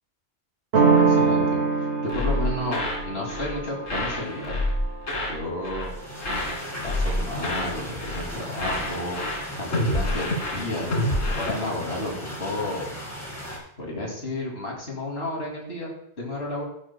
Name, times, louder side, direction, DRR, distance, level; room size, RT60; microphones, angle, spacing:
sound 1, 0.7-6.3, right 4 dB, 75° right, 1.3 m, -25 dB
voice 1, 0.9-4.6 5.3-5.9 6.8-12.1 12.4-12.9 13.8-16.6, left 1 dB, 65° left, -2 dB, 2.9 m, -32 dB
sound 2, 2.1-3.6 3.9-5.4 5.6-5.9 6.2-7.7 8.0-8.3 8.6-11.5, left 1 dB, 85° left, 1.8 m, -28 dB
sound 3, 5.8-13.6, equal, 15° left, 2.1 m, -37 dB
13.5 x 8.9 x 2.2 m, 0.72 s
omnidirectional pair, 1.1 m